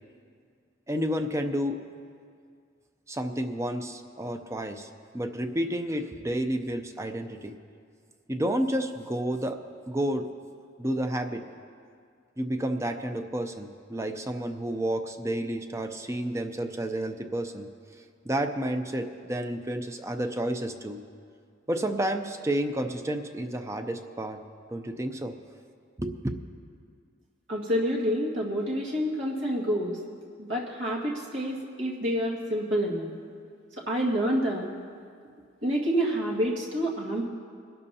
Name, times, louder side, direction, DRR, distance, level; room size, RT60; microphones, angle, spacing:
voice 1, 0.9-1.8 3.1-4.9 5.1-7.5 8.3-9.6 9.9-10.3 10.8-11.4 12.4-17.7 18.2-21.0 21.7-24.4 24.7-25.3 26.0-26.4, right 1 dB, 15° right, 6 dB, 0.5 m, -30 dB
voice 2, 27.5-30.0 30.4-33.1 33.8-34.7 35.6-37.3, equal, 75° right, -3 dB, 2.0 m, -28 dB
22.5 x 12.5 x 2.8 m, 2.2 s
head